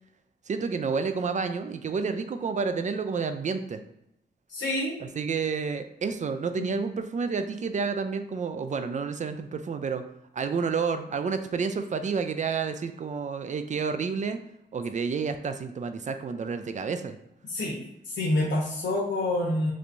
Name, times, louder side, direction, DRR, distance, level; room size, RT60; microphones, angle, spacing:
voice 1, 0.5-3.8 5.0-10.0 10.3-14.4 14.7-17.2, right 5 dB, 40° right, 9 dB, 0.4 m, -30 dB
voice 2, 4.5-4.9 6.6-6.8 17.5-17.8 18.1-19.7, left 1 dB, 80° left, -6 dB, 0.9 m, -27 dB
3.2 x 2.9 x 2.6 m, 0.82 s
cardioid pair, 70°, 19 cm